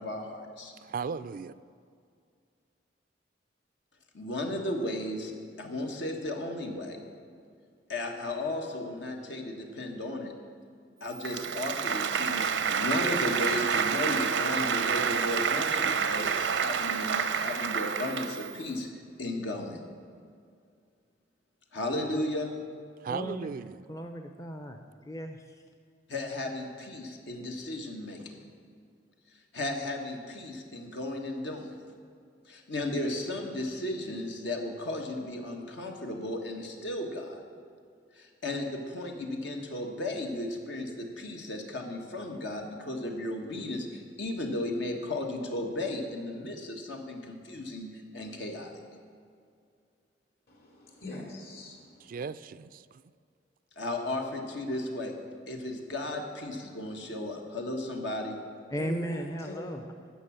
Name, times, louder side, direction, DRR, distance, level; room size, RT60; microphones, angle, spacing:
voice 1, 0.0-0.7 4.1-5.3 5.6-7.0 7.9-10.3 11.0-18.9 19.2-19.8 21.7-22.5 26.1-28.4 29.5-31.8 32.5-37.4 38.2-48.8 53.8-55.1 55.5-58.4, left 1 dB, 80° left, 1.6 m, -35 dB
voice 2, 0.8-1.5 23.0-23.8 52.0-53.0, right 5 dB, 50° right, 0.3 m, -36 dB
Applause, 11.2-18.6, right 6 dB, 85° right, 0.6 m, -28 dB
voice 3, 23.1-23.6 23.9-24.8 25.1-25.4 58.7-59.8, equal, 20° left, 0.5 m, -36 dB
voice 4, 50.5-52.2 58.8-59.8, equal, 60° left, 2.8 m, -42 dB
13.5 x 6.1 x 8.7 m
head